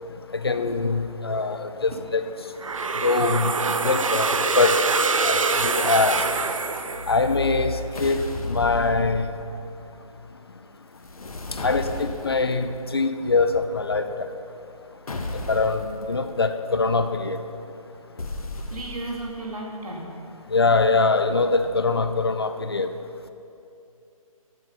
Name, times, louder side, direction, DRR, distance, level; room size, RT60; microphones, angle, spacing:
voice 1, 0.3-2.2 3.0-3.5 3.8-4.8 5.2-6.2 7.1-9.3 11.6-14.1 15.5-17.4 20.5-22.9, left 3 dB, 45° left, 10 dB, 0.6 m, -23 dB
sound 1, 2.6-7.5, right 4 dB, 65° right, 0.6 m, -24 dB
sound 2, 7.9-9.6 11.0-12.5 15.1-15.9 18.2-19.3, left 2 dB, 80° left, 1.3 m, -33 dB
voice 2, 18.7-20.1, right 2 dB, 90° right, -2 dB, 2.9 m, -34 dB
12.0 x 8.0 x 5.6 m, 2.7 s
hypercardioid pair, 175°, 18 cm